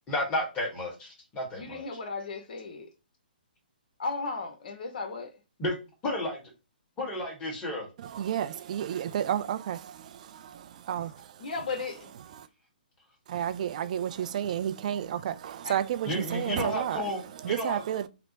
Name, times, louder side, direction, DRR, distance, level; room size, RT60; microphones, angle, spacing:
voice 1, 0.1-1.8 5.6-5.7 6.0-6.4 7.0-7.9 16.1-17.8, left 1 dB, 20° left, 1.3 m, -32 dB
voice 2, 1.5-2.9 4.0-5.3 11.4-12.1 13.4-13.6 15.6-15.8, left 4 dB, 60° left, 0.9 m, -35 dB
voice 3, 8.0-11.4 12.4-12.5 13.3-17.1 17.4-18.1, right 10 dB, 50° right, 0.3 m, -31 dB
3.3 x 2.0 x 3.9 m
hypercardioid pair, 150°, 5 cm